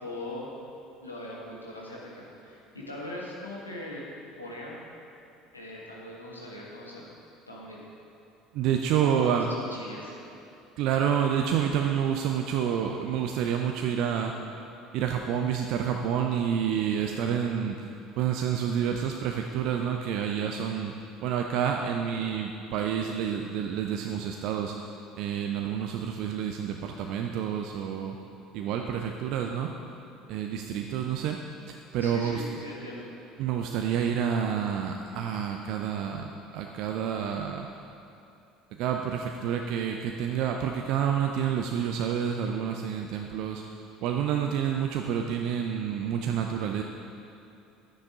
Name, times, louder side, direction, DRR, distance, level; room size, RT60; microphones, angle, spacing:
voice 1, 0.0-0.5 1.0-4.1 4.4-4.8 5.5-7.1 7.5-7.8 8.9-10.2 32.0-33.1, left 1 dB, 85° left, -5 dB, 1.6 m, -40 dB
voice 2, 8.5-9.5 10.8-14.3 14.9-17.9 18.2-20.9 21.2-24.7 25.2-28.2 28.5-29.7 30.3-31.4 31.7-32.5 32.8-32.9 33.4-37.7 38.8-43.6 44.0-46.8, right 8 dB, 55° right, 3 dB, 0.5 m, -28 dB
11.0 x 9.5 x 3.8 m, 2.8 s
figure-of-eight pair, 65°, 0 cm